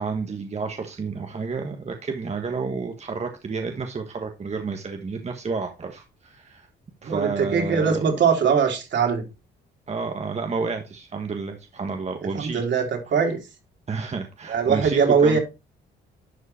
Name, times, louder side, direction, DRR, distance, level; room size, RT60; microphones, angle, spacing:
voice 1, 0.0-6.7 7.0-8.1 9.9-12.6 13.9-15.4, right 4 dB, 35° right, 1.5 m, -30 dB
voice 2, 7.0-9.2 12.3-13.4 14.5-15.4, right 6 dB, 65° right, 3.6 m, -21 dB
11.5 x 4.9 x 4.3 m
cardioid pair, 90°, 20 cm